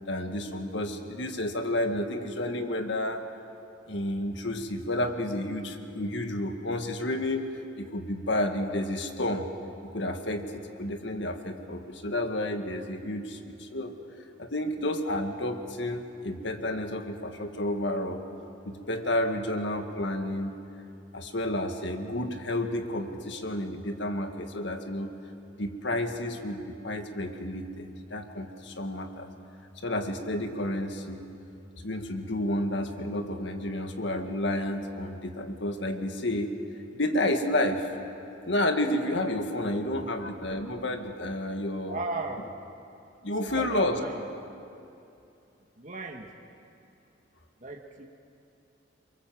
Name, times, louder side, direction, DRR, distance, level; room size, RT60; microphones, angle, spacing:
voice 1, 0.0-3.2 3.9-7.5 7.8-9.5 9.9-10.5 10.8-13.9 14.4-18.2 18.6-20.5 21.1-25.1 25.6-29.3 29.8-31.2 31.8-36.6 36.9-37.9 38.5-42.0 43.2-44.0, left 1 dB, 65° left, 5 dB, 2.0 m, -30 dB
voice 2, 39.7-40.2 41.9-42.4 43.4-44.2 45.8-46.3 47.6-48.1, right 2 dB, 40° right, 2 dB, 1.7 m, -36 dB
27.5 x 23.5 x 7.7 m, 2.7 s
head